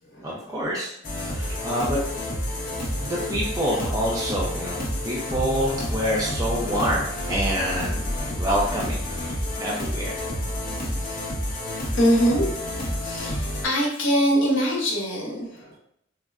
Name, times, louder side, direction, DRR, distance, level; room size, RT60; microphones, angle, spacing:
voice 1, 0.2-2.0 3.0-9.1 9.6-10.1, equal, 15° right, -4 dB, 0.4 m, -27 dB
sound 1, 1.0-13.6, left 1 dB, 45° left, 0.6 m, -29 dB
voice 2, 11.9-12.5 13.0-15.8, equal, 70° left, -2 dB, 0.8 m, -23 dB
3.7 x 2.1 x 2.3 m, 0.74 s
head